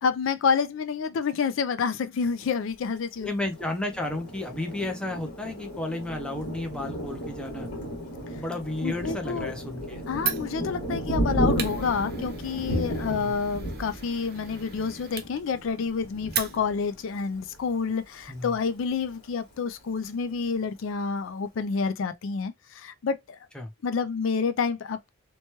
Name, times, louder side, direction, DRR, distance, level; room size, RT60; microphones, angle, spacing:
voice 1, 0.0-3.3 8.8-9.5 10.1-23.4 23.8-25.1, left 5 dB, 70° left, 0.4 m, -28 dB
voice 2, 3.2-7.7 8.3-10.0 13.1-13.3 18.3-18.5 23.5-23.7, left 2 dB, 5° left, 0.5 m, -32 dB
Thunder, 3.4-17.7 18.2-18.3 18.6-19.3, equal, 50° left, 1.4 m, -34 dB
Fire, 10.2-17.0, right 8 dB, 45° right, 0.6 m, -37 dB
3.0 x 2.2 x 2.8 m
head